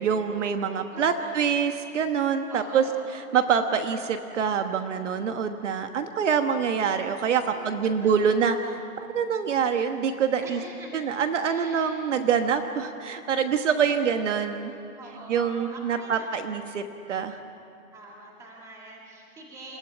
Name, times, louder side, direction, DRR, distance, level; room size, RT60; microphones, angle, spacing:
voice 1, 0.0-2.8 3.1-8.6 9.0-10.6 10.9-14.7 15.3-16.8 17.1-17.4, right 7 dB, 55° right, 7 dB, 1.3 m, -25 dB
voice 2, 0.9-1.5 2.5-3.0 7.5-8.8 10.4-11.1 11.5-12.0 13.3-13.6 14.5-14.6 15.0-16.5 17.9-19.8, right 2 dB, 5° right, -2 dB, 1.7 m, -45 dB
28.5 x 14.5 x 9.4 m, 2.5 s
hypercardioid pair, 175°, 43 cm